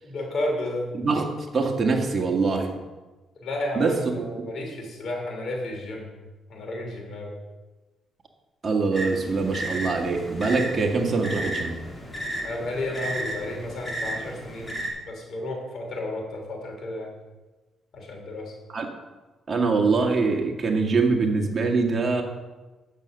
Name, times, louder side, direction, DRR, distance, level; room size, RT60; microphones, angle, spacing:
voice 1, 0.0-0.9 3.4-6.1 6.5-7.3 12.4-14.7 15.0-17.1 17.9-18.5, left 1 dB, 60° left, 1 dB, 3.1 m, -32 dB
voice 2, 0.9-1.3 1.5-2.7 3.8-4.2 8.6-11.8 18.7-18.9 19.5-22.2, right 4 dB, 35° right, 1 dB, 1.8 m, -23 dB
sound 1, 8.9-14.9, right 1 dB, 20° left, 2.3 m, -33 dB
8.8 x 6.8 x 6.5 m, 1.2 s
cardioid pair, 90°, 0 cm